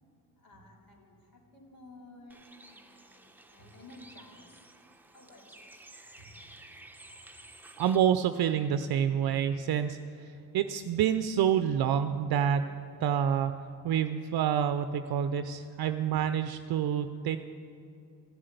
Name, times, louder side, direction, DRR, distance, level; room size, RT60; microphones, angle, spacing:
voice 1, 0.4-4.5 5.1-5.7 6.2-6.6 7.4-7.5, left 1 dB, 55° left, -1 dB, 3.3 m, -54 dB
Bird, 2.3-8.0, right 2 dB, 5° right, 1.1 m, -53 dB
voice 2, 7.8-12.6 13.0-13.5 13.8-17.4, right 9 dB, 60° right, 9 dB, 0.6 m, -28 dB
14.5 x 7.5 x 8.0 m, 2.6 s
supercardioid pair, 65°, 42 cm